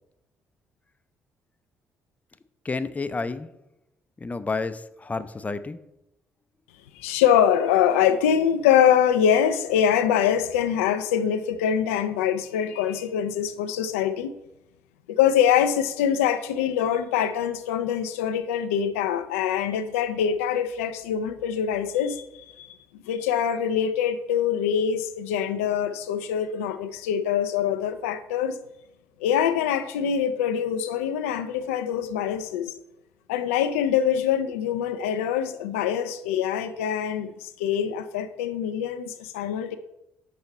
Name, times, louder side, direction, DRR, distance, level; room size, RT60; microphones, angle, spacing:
voice 1, 2.6-3.5 4.2-5.8, left 4 dB, 20° left, 0.5 m, -30 dB
voice 2, 7.0-14.3 15.1-22.2 22.6-22.7 23.1-28.6 29.2-32.7 33.3-39.8, left 9 dB, 80° left, 0.3 m, -24 dB
6.0 x 5.5 x 4.2 m
figure-of-eight pair, 45°, 7 cm